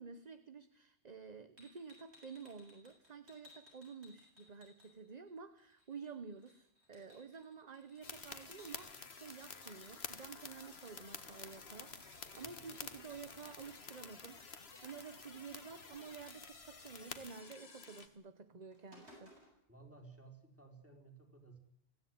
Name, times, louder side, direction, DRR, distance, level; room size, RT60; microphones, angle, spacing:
voice 1, 0.0-14.4 14.8-19.3, right 5 dB, 35° right, 11 dB, 1.1 m, -51 dB
sound 1, 1.6-5.3 5.6-8.9 11.0-11.1 11.4-13.6 14.8-15.1 15.4-15.5 15.8-16.9 18.0-18.1 18.5-19.6, left 1 dB, 60° right, 8.4 m, -63 dB
sound 2, 8.0-18.1, left 4 dB, 55° left, 1.9 m, -50 dB
voice 2, 19.7-21.6, right 3 dB, 10° right, 3 dB, 4.6 m, -57 dB
24.5 x 16.5 x 9.6 m, 0.74 s
omnidirectional pair, 1.3 m